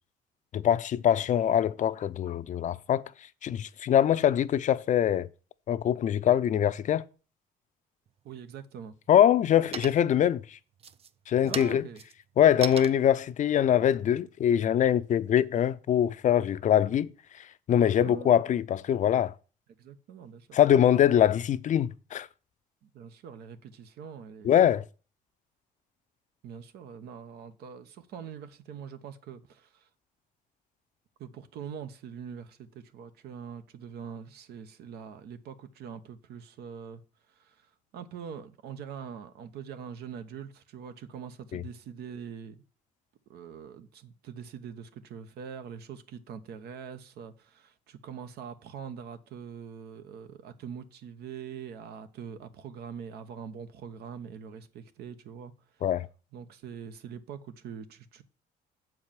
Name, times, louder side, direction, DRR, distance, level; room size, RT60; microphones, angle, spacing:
voice 1, 0.5-3.0 3.4-5.3 5.7-7.0 9.1-10.6 11.3-11.9 12.4-17.1 17.7-19.3 20.5-22.3 24.4-24.9 41.5-41.6 55.8-56.1, left 10 dB, 45° left, 0.6 m, -23 dB
sound 1, 8.1-8.6 9.1-9.5 9.7-10.3 10.7-15.2, right 7 dB, 35° right, 0.5 m, -41 dB
voice 2, 8.2-8.9 11.4-12.0 18.0-18.5 19.8-20.6 22.8-24.5 26.4-29.9 31.2-37.0 37.3-42.6 43.3-55.8 56.3-58.2, right 7 dB, 70° right, 1.1 m, -43 dB
7.7 x 4.8 x 7.2 m
cardioid pair, 110°, 17 cm